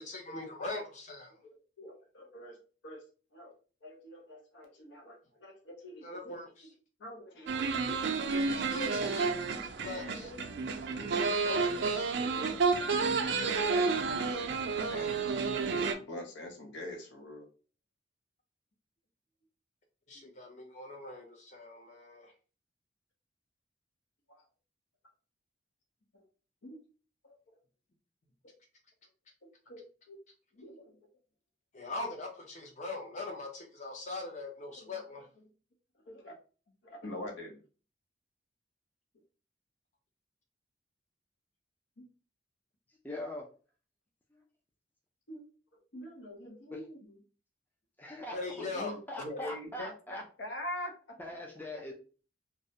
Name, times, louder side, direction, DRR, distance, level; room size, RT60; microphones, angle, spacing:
voice 1, 0.0-1.3 6.0-6.7 8.3-10.3 11.2-12.1 20.1-22.3 31.7-35.2 48.3-48.9, left 2 dB, 40° left, 1 dB, 0.6 m, -41 dB
voice 2, 0.5-0.8 1.8-2.6 2.8-3.0 3.3-3.5 3.8-6.4 7.0-8.6 9.5-12.6 13.7-14.6 14.9-15.3 15.6-17.5 20.1-20.2 24.3-24.4 26.6-26.8 29.4-30.2 30.5-31.0 34.8-34.9 36.1-36.3 36.8-37.6 45.3-45.4 45.9-47.2 48.6-51.2, left 1 dB, 85° left, 2 dB, 0.7 m, -45 dB
sound 1, 7.5-15.9, right 4 dB, 75° right, 0.4 m, -30 dB
voice 3, 43.0-43.4 48.0-48.5 49.1-50.2 51.2-51.9, left 1 dB, 10° left, 0 dB, 0.4 m, -41 dB
2.3 x 2.0 x 2.7 m, 0.37 s
head